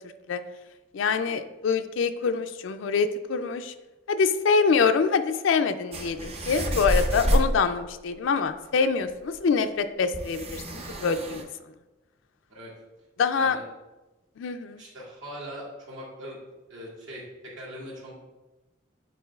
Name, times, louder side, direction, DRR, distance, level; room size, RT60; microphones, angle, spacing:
voice 1, 0.9-3.7 4.1-11.4 13.2-13.6 14.4-14.8, left 5 dB, 70° left, 8 dB, 0.4 m, -25 dB
sound 1, 5.9-7.5 9.0-9.1 9.3-9.4 10.1-11.4, equal, 30° right, 0.6 m, -27 dB
voice 2, 14.8-16.4 16.7-18.1, equal, 75° right, -5 dB, 2.1 m, -41 dB
9.2 x 4.3 x 2.3 m, 1.1 s
head